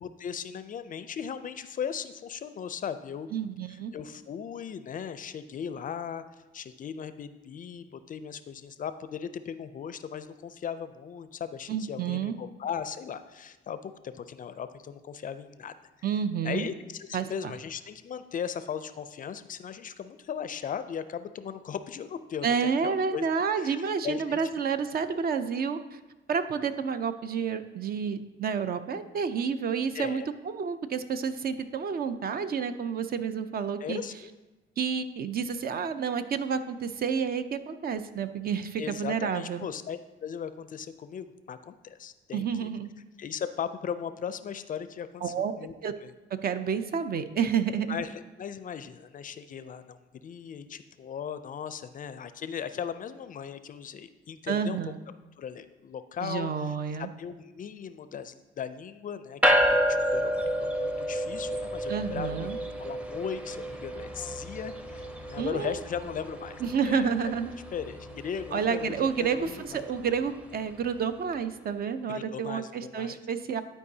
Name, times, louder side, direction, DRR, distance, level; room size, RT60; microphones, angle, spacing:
voice 1, 0.0-3.3 3.7-6.2 6.5-15.7 16.4-24.4 29.9-30.3 33.8-34.3 38.8-42.7 43.2-45.7 46.0-46.1 47.9-54.8 55.4-62.5 62.8-67.3 67.7-69.9 72.1-73.2, left 7 dB, 45° left, 12 dB, 0.4 m, -38 dB
voice 2, 3.3-3.9 11.7-12.4 16.0-16.7 17.1-17.5 22.4-26.0 26.3-34.0 34.8-39.6 42.3-42.9 45.2-45.5 45.8-45.9 46.4-48.0 54.5-55.0 56.2-57.1 61.9-62.6 65.4-65.8 66.6-67.5 68.5-73.6, right 6 dB, 50° right, 10 dB, 0.5 m, -30 dB
sound 1, 59.4-71.0, equal, 5° right, 0.6 m, -31 dB
11.5 x 4.6 x 2.7 m, 1.1 s
cardioid pair, 90°, 20 cm